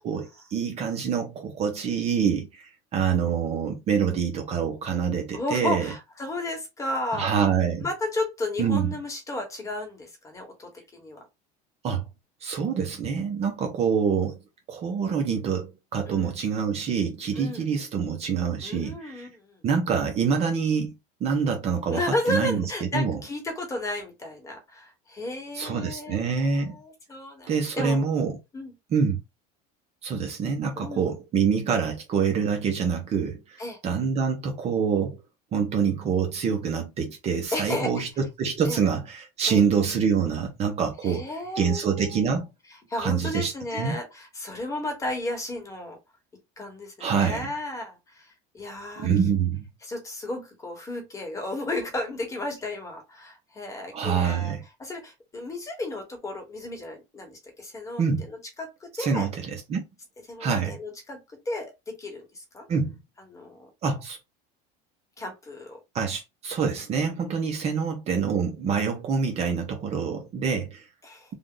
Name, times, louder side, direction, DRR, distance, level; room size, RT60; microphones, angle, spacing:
voice 1, 0.0-5.9 7.1-7.9 8.6-8.9 11.8-12.1 12.4-14.4 14.7-19.3 19.6-20.9 21.2-22.6 22.9-23.2 25.5-26.8 27.5-28.4 28.9-29.2 30.0-35.2 35.5-41.3 41.6-42.5 43.0-43.9 47.0-47.5 49.0-49.7 53.9-54.6 58.0-58.2 59.0-59.8 60.4-60.8 62.7-63.0 63.8-64.2 65.9-70.9, right 6 dB, 35° right, 0.9 m, -26 dB
voice 2, 5.3-7.3 7.8-11.2 16.1-16.3 17.4-17.6 18.6-19.6 21.9-28.0 28.5-28.7 30.7-31.1 33.6-33.8 37.5-37.9 38.7-38.8 39.5-39.6 41.0-42.4 42.9-46.0 46.6-49.1 49.8-59.3 60.3-61.2 61.4-62.7 63.3-63.7 65.2-65.8 71.0-71.4, left 2 dB, 15° left, 1.4 m, -33 dB
3.4 x 2.5 x 3.8 m
cardioid pair, 160°, 20 cm